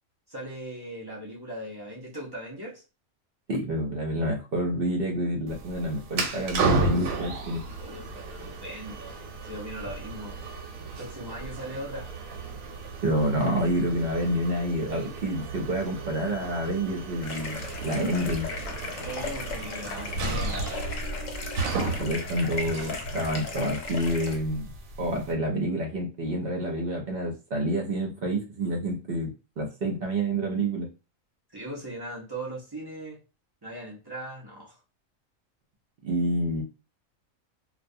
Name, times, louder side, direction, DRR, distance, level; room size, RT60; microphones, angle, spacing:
voice 1, 0.3-2.8 7.8-9.2 9.4-10.3 11.0-12.1 19.0-20.7 31.5-33.2 33.6-34.8, right 1 dB, 40° right, -4 dB, 0.3 m, -39 dB
voice 2, 3.5-7.6 13.0-18.5 22.0-24.7 25.0-30.9 36.0-36.6, right 1 dB, 55° right, 0 dB, 0.7 m, -28 dB
sound 1, 5.5-25.3, right 3 dB, 85° right, 1.0 m, -34 dB
sound 2, 17.2-24.4, left 3 dB, 75° left, 1.0 m, -37 dB
2.3 x 2.2 x 2.6 m, 0.31 s
omnidirectional pair, 1.4 m